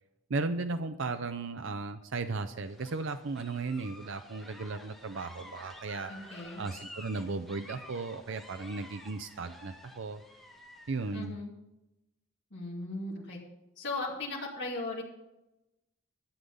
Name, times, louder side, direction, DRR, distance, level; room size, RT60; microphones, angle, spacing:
voice 1, 0.3-10.2 10.9-11.3, right 3 dB, 70° right, 9 dB, 0.6 m, -36 dB
sound 1, 2.7-11.2, left 1 dB, ahead, 1.8 m, -51 dB
voice 2, 6.1-6.6 11.1-11.5 12.5-13.4 13.8-15.0, left 2 dB, 60° left, -4 dB, 2.5 m, -37 dB
11.5 x 7.8 x 5.4 m, 0.94 s
head